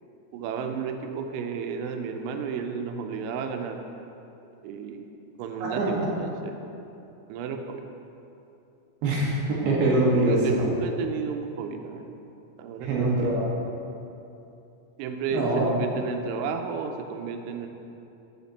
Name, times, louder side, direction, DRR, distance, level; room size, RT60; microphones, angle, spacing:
voice 1, 0.3-3.8 4.6-5.0 5.4-6.5 7.3-7.8 10.3-12.1 12.6-13.3 15.0-17.7, right 6 dB, 90° right, 5 dB, 3.1 m, -32 dB
voice 2, 5.6-6.1 9.0-10.6 12.8-13.5 15.3-15.7, right 2 dB, 65° right, -5 dB, 2.9 m, -24 dB
12.5 x 5.9 x 4.1 m, 2.8 s
omnidirectional pair, 5.5 m